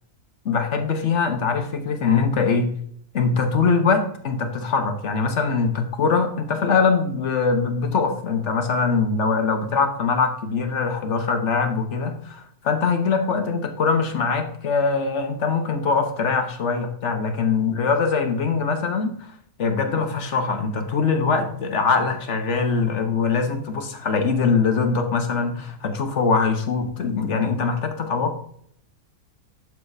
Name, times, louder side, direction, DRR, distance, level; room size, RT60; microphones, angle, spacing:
voice 1, 0.4-2.7 3.1-19.1 19.6-28.4, left 5 dB, 50° left, 6 dB, 1.3 m, -22 dB
11.0 x 6.9 x 2.7 m, 0.66 s
omnidirectional pair, 1.6 m